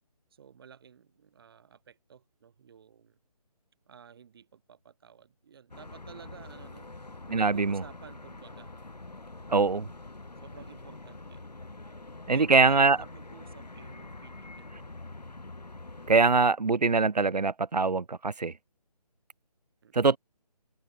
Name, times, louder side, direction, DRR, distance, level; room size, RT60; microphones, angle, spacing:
voice 1, 0.3-3.2 3.9-6.9 7.3-8.7 9.5-10.0 10.4-11.5 11.8-14.9 19.8-19.9, right 7 dB, 35° right, 3.5 m, -52 dB
sound 1, 5.7-16.2, left 2 dB, 85° left, 1.2 m, -45 dB
voice 2, 7.3-7.8 9.5-9.8 12.3-13.0 16.1-18.5 19.9-20.2, right 4 dB, 85° right, 0.6 m, -23 dB
figure-of-eight pair, 150°, 20 cm